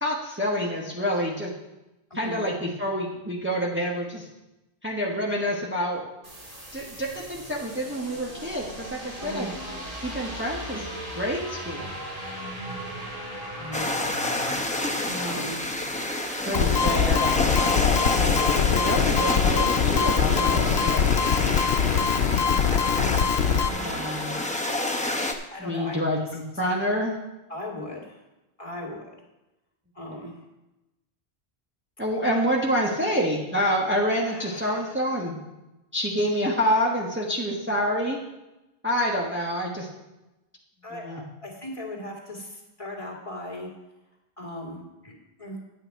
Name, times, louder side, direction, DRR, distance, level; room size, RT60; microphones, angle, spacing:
voice 1, 0.0-1.5 2.1-4.3 4.8-6.1 6.7-9.5 10.0-10.9 11.1-11.9 15.0-15.4 16.5-17.3 17.6-17.8 18.2-18.4 18.7-21.1 23.7-24.3 25.6-27.1 32.0-35.4 35.9-38.2 38.8-39.9 40.9-41.2, equal, 10° right, -3 dB, 1.2 m, -27 dB
voice 2, 2.1-2.4 9.2-9.5 13.6-13.9 15.2-15.6 17.8-18.7 19.0-19.2 25.2-26.0 27.5-28.2 28.6-29.0 29.9-30.3 34.3-35.0 40.8-43.7 44.4-45.6, left 1 dB, 30° left, -3 dB, 2.4 m, -38 dB
sound 1, 6.2-24.5, right 1 dB, 35° right, 2.2 m, -38 dB
sound 2, 13.7-25.3, left 1 dB, 10° left, 0.7 m, -28 dB
sound 3, 16.5-23.7, left 8 dB, 80° left, 0.8 m, -23 dB
10.5 x 8.7 x 4.6 m, 0.99 s
omnidirectional pair, 1.0 m